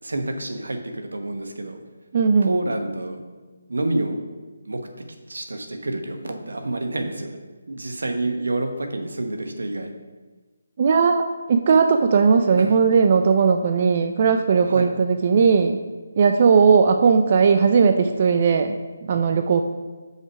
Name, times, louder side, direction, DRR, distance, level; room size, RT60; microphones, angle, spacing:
voice 1, 0.0-1.8 2.4-3.2 3.7-4.3 4.6-4.8 5.3-7.4 7.7-9.9 12.6-12.8 14.6-14.9, right 2 dB, 80° right, 5 dB, 1.1 m, -28 dB
voice 2, 2.1-2.5 10.8-15.8 16.2-19.6, right 5 dB, 40° right, 7 dB, 0.4 m, -18 dB
5.6 x 4.5 x 5.9 m, 1.3 s
figure-of-eight pair, 160°, 0 cm